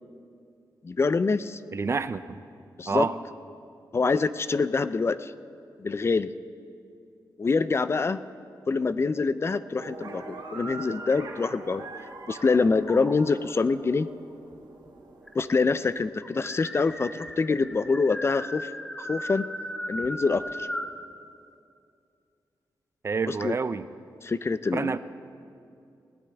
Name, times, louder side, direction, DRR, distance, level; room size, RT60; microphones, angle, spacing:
voice 1, 0.8-1.6 2.8-3.1 3.9-5.3 5.8-6.3 7.4-8.2 8.7-11.8 12.3-14.1 15.3-18.7 19.0-19.4 19.9-20.7 23.3-23.6 24.2-25.0, left 4 dB, 35° left, 14 dB, 0.4 m, -25 dB
voice 2, 1.7-2.2 2.9-3.2 23.0-23.9 24.7-25.0, right 4 dB, 35° right, 13 dB, 0.5 m, -27 dB
sound 1, 9.8-16.0, right 3 dB, 75° right, 1.8 m, -43 dB
sound 2, 11.0-12.3 12.9-13.5 14.5-14.6 14.9-15.0 15.3-21.0, equal, 10° left, 0.9 m, -37 dB
19.5 x 16.5 x 3.5 m, 2.5 s
wide cardioid pair, 110°, 8 cm